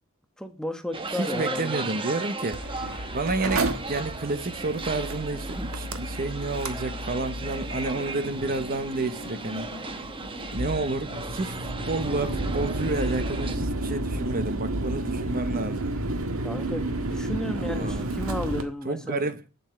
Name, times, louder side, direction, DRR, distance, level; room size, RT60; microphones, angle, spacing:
voice 1, 0.4-2.0 5.5-5.7 16.4-19.2, left 1 dB, 5° left, 1.2 m, -33 dB
sound 1, 0.9-13.6, right 3 dB, 25° right, 1.2 m, -37 dB
voice 2, 1.1-2.6 3.1-9.7 10.5-15.9 17.6-18.1 18.8-19.4, right 2 dB, 45° right, 1.1 m, -30 dB
sound 2, 2.1-16.1, left 3 dB, 45° left, 1.8 m, -45 dB
Mechanical fan, 2.5-18.6, right 2 dB, 80° right, 1.7 m, -32 dB
8.1 x 7.7 x 8.8 m
head